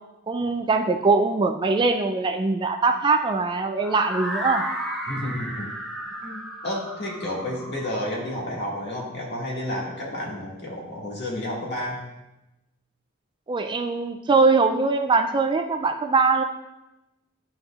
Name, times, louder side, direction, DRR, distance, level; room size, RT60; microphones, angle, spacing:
voice 1, 0.3-4.7 13.5-16.4, right 4 dB, 20° right, 6 dB, 0.3 m, -22 dB
sound 1, 3.8-9.7, right 1 dB, ahead, 0.7 m, -34 dB
voice 2, 5.1-5.7 6.2-12.0, left 1 dB, 55° left, -4 dB, 2.0 m, -31 dB
11.0 x 6.2 x 2.4 m, 0.97 s
head